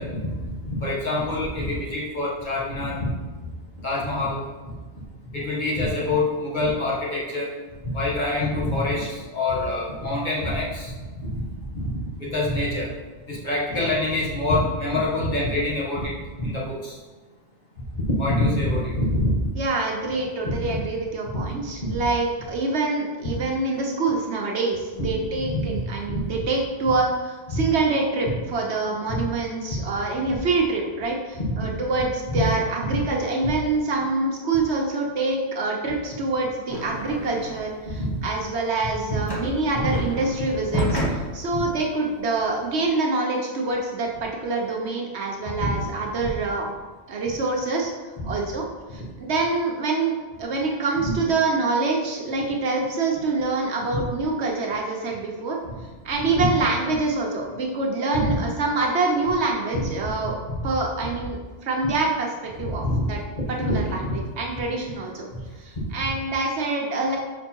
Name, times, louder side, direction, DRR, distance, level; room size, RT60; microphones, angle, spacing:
voice 1, 0.0-3.1 3.8-4.4 5.3-7.5 7.8-11.4 11.7-11.8 12.2-12.9 13.3-17.0 17.9-19.5 20.4-20.7 21.8-22.1 23.3-23.4 25.0-25.1 25.5-25.8 26.1-26.2 27.5-27.6 29.1-29.2 30.3-30.4 31.3-31.7 32.3-32.4 32.8-33.0 37.0-37.1 37.8-38.2 39.1-39.2 39.8-39.9 41.5-41.6 45.4-45.7 46.2-46.3 48.2-48.3 53.9-54.0 55.6-55.7 56.3-56.5 58.1-58.3 59.7-60.1 60.5-60.7 62.6-63.0 63.4-63.7 64.0-64.1 65.3-65.4 65.8-65.9, left 1 dB, 40° left, -6 dB, 1.5 m, -26 dB
voice 2, 19.6-46.7 47.1-47.9 48.2-48.6 48.9-50.1 50.4-55.6 56.0-60.4 60.6-62.8 63.1-63.2 63.7-65.2 65.6-67.2, right 3 dB, 70° right, 0 dB, 1.1 m, -25 dB
sound 1, 36.7-37.8 38.2-42.7, equal, 20° left, 1.1 m, -30 dB
5.3 x 4.2 x 4.5 m, 1.3 s
omnidirectional pair, 1.2 m